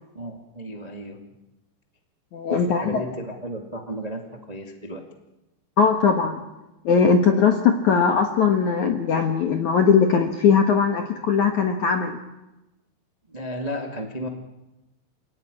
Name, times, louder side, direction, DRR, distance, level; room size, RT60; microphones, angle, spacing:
voice 1, 0.1-1.2 2.5-5.0 13.3-14.3, equal, 85° right, 3 dB, 0.3 m, -33 dB
voice 2, 2.3-3.0 5.8-6.4 6.9-12.2, left 6 dB, 65° left, 4 dB, 2.0 m, -20 dB
27.5 x 17.5 x 9.9 m, 1.0 s
omnidirectional pair, 5.3 m